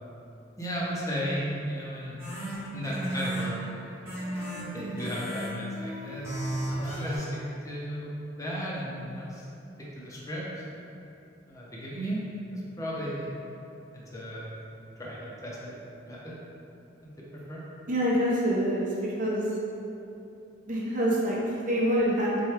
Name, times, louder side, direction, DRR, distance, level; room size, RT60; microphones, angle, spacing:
voice 1, 0.6-2.1 2.7-3.5 4.7-6.5 6.8-7.3 7.6-8.1 8.4-9.5 10.0-10.6 11.5-12.2 12.5-13.3 13.9-14.4 15.0-15.7 16.1-16.3 17.5-17.6, equal, 15° left, -6 dB, 0.6 m, -34 dB
sound 1, 2.2-7.2, right 1 dB, 15° right, 1.1 m, -34 dB
voice 2, 17.9-19.4 20.7-22.4, equal, 45° right, -5 dB, 0.7 m, -26 dB
4.3 x 2.2 x 3.2 m, 2.8 s
head